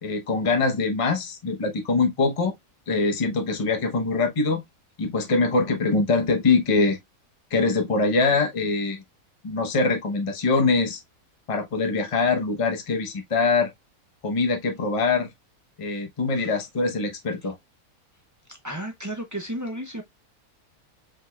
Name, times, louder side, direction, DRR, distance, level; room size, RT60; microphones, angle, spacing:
voice 1, 0.0-2.5 2.9-4.6 5.0-7.0 7.5-9.0 9.4-11.0 11.5-13.7 14.2-15.3 15.8-17.5, left 3 dB, 30° left, 0.8 m, -23 dB
voice 2, 18.6-20.0, right 1 dB, 30° right, 0.3 m, -33 dB
4.8 x 3.8 x 2.3 m
omnidirectional pair, 1.6 m